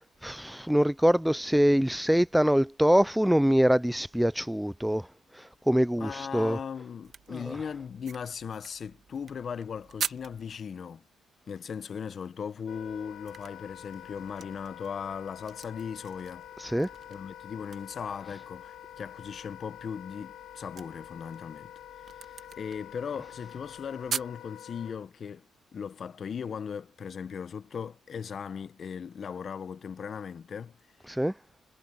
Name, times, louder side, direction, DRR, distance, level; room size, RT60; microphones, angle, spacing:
voice 1, 0.2-5.1 5.7-6.6 7.3-7.5 16.6-16.9 31.1-31.3, equal, 5° right, 0.4 m, -24 dB
voice 2, 6.0-11.0 11.5-16.5 17.1-21.7 22.2-25.4 25.7-30.8, left 7 dB, 50° left, 0.9 m, -38 dB
sound 1, 7.0-10.6 12.7-24.4, right 7 dB, 55° right, 1.5 m, -44 dB
Wind instrument woodwind instrument, 12.7-25.0, left 12 dB, 75° left, 1.2 m, -47 dB
cardioid pair, 90°, 0 cm